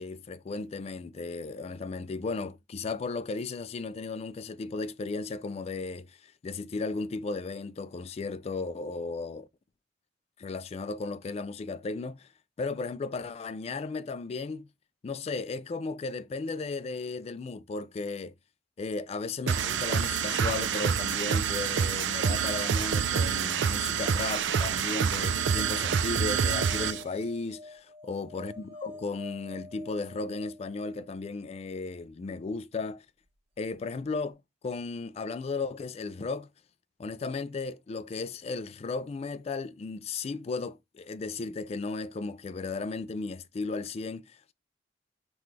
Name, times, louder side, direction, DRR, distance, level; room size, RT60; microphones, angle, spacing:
voice 1, 0.0-9.5 10.4-12.3 12.6-14.7 15.0-18.3 18.8-33.1 33.6-36.5 37.0-44.4, left 3 dB, 35° left, 0.3 m, -35 dB
sound 1, 19.5-27.0, right 7 dB, 80° right, 0.4 m, -27 dB
sound 2, 25.2-31.4 33.7-33.8 34.0-34.1, left 2 dB, 30° right, 0.6 m, -48 dB
5.7 x 2.3 x 3.2 m
head